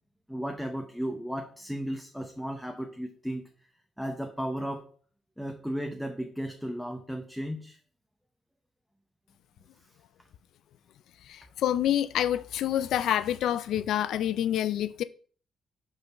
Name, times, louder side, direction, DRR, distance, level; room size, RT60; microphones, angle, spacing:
voice 1, 0.3-3.4 4.0-4.9 5.4-7.8, equal, ahead, 0.9 m, -34 dB
voice 2, 11.3-15.0, left 11 dB, 80° left, 0.3 m, -27 dB
5.5 x 4.3 x 5.6 m
cardioid pair, 90°, 0 cm